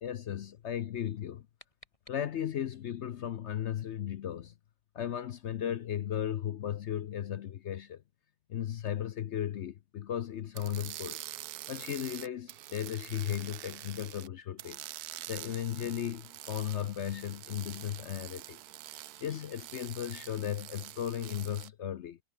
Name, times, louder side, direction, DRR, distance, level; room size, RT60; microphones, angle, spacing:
voice 1, 0.0-1.5 2.1-4.5 4.9-8.0 8.5-11.2 11.7-22.2, left 10 dB, 60° left, 0.7 m, -36 dB
sound 1, 1.1-2.8, left 1 dB, 20° left, 4.9 m, -61 dB
sound 2, 10.5-14.3 14.6-21.7, right 15 dB, 70° right, 1.1 m, -46 dB
omnidirectional pair, 1.8 m